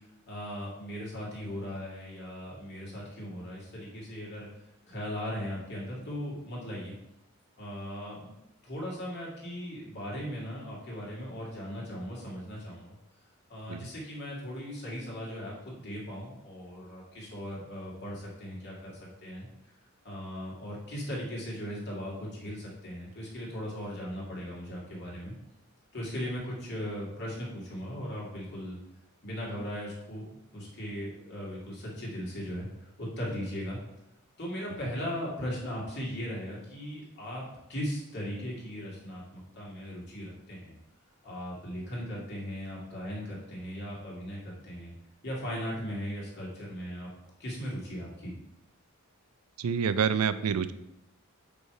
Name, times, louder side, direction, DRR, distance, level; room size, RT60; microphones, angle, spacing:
voice 1, 0.3-4.5 4.9-6.9 7.6-8.3 8.6-12.9 13.5-19.5 20.0-25.3 25.9-28.8 29.2-30.2 30.5-32.7 33.0-33.8 34.4-37.4 37.7-40.7 41.2-44.9 45.2-47.1 47.4-48.3, equal, 55° left, -4 dB, 2.1 m, -38 dB
voice 2, 49.6-50.7, right 7 dB, 90° right, 13 dB, 0.4 m, -27 dB
5.3 x 4.8 x 4.7 m, 0.87 s
head